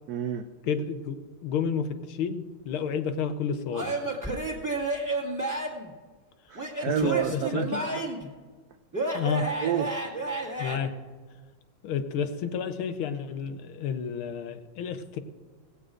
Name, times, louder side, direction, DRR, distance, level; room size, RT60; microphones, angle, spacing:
voice 1, 0.1-0.5 6.5-8.0 9.6-9.9, right 9 dB, 80° right, 8 dB, 0.8 m, -29 dB
voice 2, 0.6-3.9 6.9-7.8 9.1-9.5 10.6-10.9 11.8-15.2, left 6 dB, 80° left, 9 dB, 1.7 m, -31 dB
Male speech man speaking / Yell / Laughter, 3.7-5.9 6.6-8.3 8.9-10.8, right 2 dB, 10° right, 1.9 m, -31 dB
19.5 x 16.0 x 2.5 m, 1.4 s
omnidirectional pair, 2.3 m